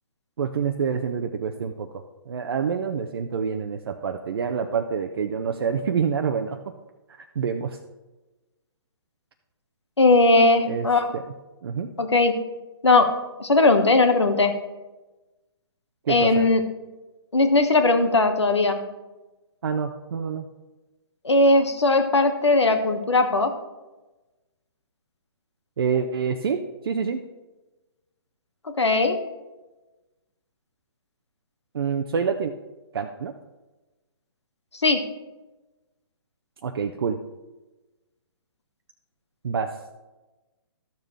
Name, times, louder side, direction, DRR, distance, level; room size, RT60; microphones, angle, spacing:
voice 1, 0.4-6.7 7.2-7.8 10.6-10.9 11.1-11.2 11.6-11.9 16.1-16.5 19.6-20.5 25.8-27.2 31.7-32.5 32.9-33.3 36.6-37.2 39.4-39.7, right 6 dB, 60° right, 5 dB, 0.6 m, -27 dB
voice 2, 10.0-11.1 12.0-12.4 12.8-13.1 13.4-14.5 16.1-16.6 17.3-18.8 21.2-23.5 28.8-29.2 34.8-35.0, left 2 dB, 90° left, 7 dB, 1.3 m, -19 dB
13.0 x 6.8 x 3.3 m, 1.1 s
figure-of-eight pair, 135°, 14 cm